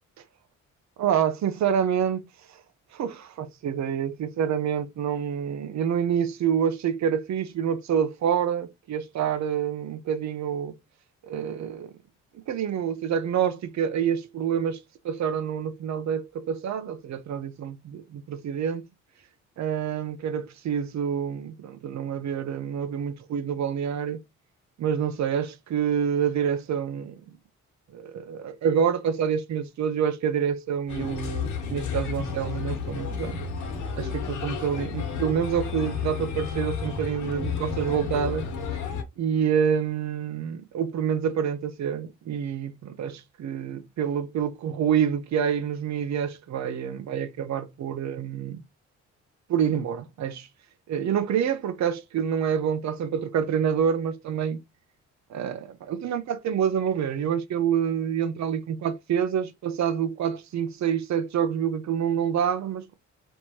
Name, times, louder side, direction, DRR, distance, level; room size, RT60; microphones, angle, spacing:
voice 1, 1.0-2.2 2.5-2.6 2.9-10.7 11.2-11.9 12.3-18.8 19.6-24.2 24.8-27.1 27.9-33.4 34.0-38.5 39.2-48.6 49.5-50.5 50.9-54.6 55.3-62.9, right 8 dB, 65° right, 0.8 m, -27 dB
Bird, 30.9-39.0, left 6 dB, 85° left, 1.5 m, -32 dB
4.6 x 3.3 x 2.8 m
cardioid pair, 90°, 30 cm